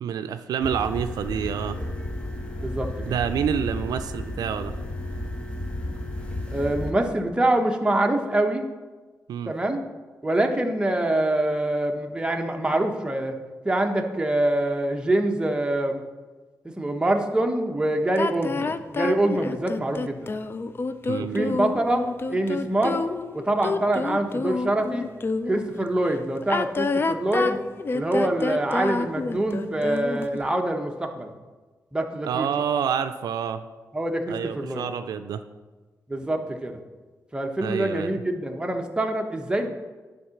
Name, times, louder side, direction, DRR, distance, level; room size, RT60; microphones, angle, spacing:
voice 1, 0.0-1.8 3.1-4.7 9.3-9.5 21.1-21.6 32.3-33.6 34.3-35.4 37.6-38.2, right 8 dB, 90° right, 10 dB, 0.4 m, -28 dB
sound 1, 0.6-6.9, left 1 dB, 20° left, 1.0 m, -33 dB
voice 2, 2.6-2.9 6.5-8.7 9.5-9.8 10.2-13.4 13.6-16.0 16.8-20.3 21.2-22.0 22.3-23.0 23.3-25.0 25.5-27.6 27.9-31.3 31.9-32.5 33.9-34.9 36.1-36.8 37.3-39.7, right 1 dB, 15° right, 3 dB, 1.0 m, -25 dB
sound 2, 18.2-25.7 26.4-30.4, left 3 dB, 35° left, 0.4 m, -28 dB
9.4 x 3.9 x 5.8 m, 1.3 s
cardioid pair, 80°, 6 cm